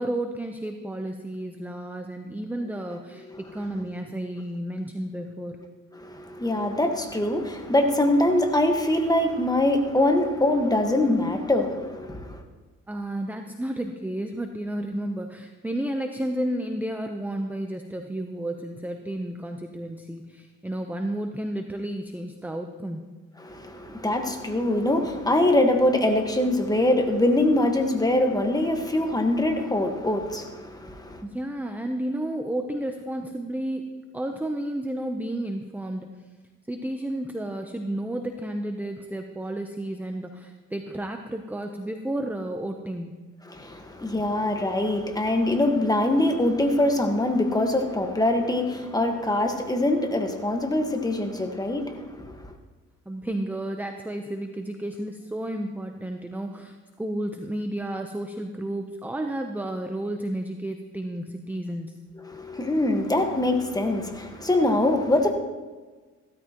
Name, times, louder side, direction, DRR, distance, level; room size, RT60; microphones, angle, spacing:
voice 1, 0.0-5.6 12.9-23.1 31.2-36.1 36.7-43.2 53.1-62.0, right 1 dB, 5° right, 5 dB, 0.8 m, -32 dB
voice 2, 6.0-12.4 23.4-31.2 43.5-52.3 62.3-65.3, left 1 dB, 10° left, 4 dB, 1.5 m, -23 dB
15.5 x 13.0 x 3.0 m, 1.3 s
cardioid pair, 90°, 30 cm